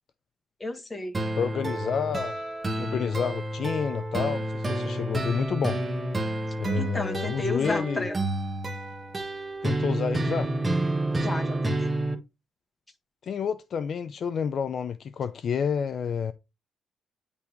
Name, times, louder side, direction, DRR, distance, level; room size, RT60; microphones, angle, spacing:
voice 1, 0.6-1.2 6.7-8.2 11.2-11.9, left 2 dB, 15° left, 1.6 m, -33 dB
sound 1, 1.1-12.1, right 1 dB, 20° right, 1.3 m, -29 dB
voice 2, 1.4-2.4 2.8-5.8 6.6-8.0 9.6-10.5 13.2-16.3, left 7 dB, 55° left, 0.5 m, -29 dB
9.7 x 3.5 x 3.1 m
cardioid pair, 90°, 0 cm